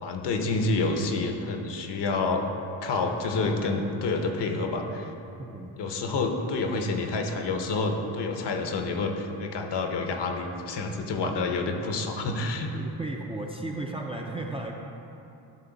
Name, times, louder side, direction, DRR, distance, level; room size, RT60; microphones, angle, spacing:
voice 1, 0.0-2.4 2.8-5.1 5.8-12.7, left 3 dB, 60° left, 4 dB, 0.9 m, -28 dB
voice 2, 5.4-5.8 12.7-14.7, right 2 dB, 15° right, -1 dB, 0.4 m, -35 dB
11.5 x 3.9 x 4.0 m, 2.8 s
cardioid pair, 115°, 47 cm